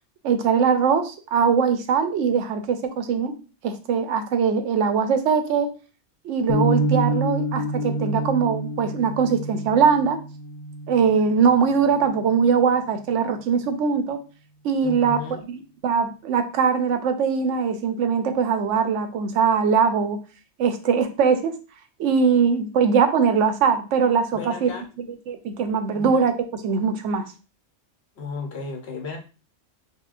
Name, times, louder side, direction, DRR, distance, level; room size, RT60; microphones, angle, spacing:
voice 1, 0.2-3.3 3.6-5.7 6.2-10.2 10.9-14.2 14.6-15.2 15.8-20.2 20.6-21.5 22.0-24.7 25.3-26.3 26.6-27.3, right 6 dB, 80° right, 7 dB, 0.9 m, -21 dB
sound 1, 6.5-12.6, right 1 dB, 85° left, 1.1 m, -28 dB
voice 2, 14.8-15.4 24.3-24.9 25.9-26.3 28.2-29.2, left 3 dB, 60° left, 2 dB, 1.1 m, -34 dB
5.7 x 2.2 x 2.4 m, 0.34 s
omnidirectional pair, 1.3 m